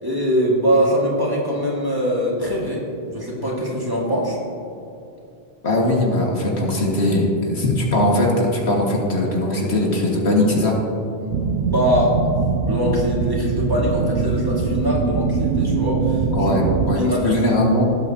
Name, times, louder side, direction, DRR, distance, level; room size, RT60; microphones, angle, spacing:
voice 1, 0.0-4.4 11.2-16.5 17.0-17.4, equal, 20° right, -6 dB, 2.1 m, -22 dB
voice 2, 5.6-10.8 16.3-17.8, left 1 dB, 90° left, -2 dB, 2.2 m, -20 dB
sound 1, 11.3-17.0, right 5 dB, 85° right, 1.0 m, -22 dB
17.5 x 8.2 x 2.9 m, 2.7 s
omnidirectional pair, 1.1 m